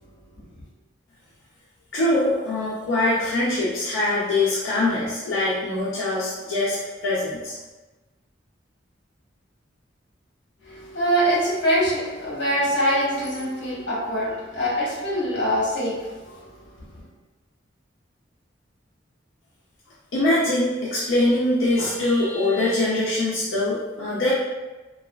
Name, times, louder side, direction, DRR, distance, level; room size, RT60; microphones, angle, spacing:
voice 1, 1.9-7.6 20.1-24.3, left 2 dB, 85° left, -8 dB, 0.6 m, -23 dB
voice 2, 10.6-16.4, equal, 60° left, -7 dB, 1.1 m, -24 dB
3.2 x 2.4 x 2.2 m, 1.2 s
head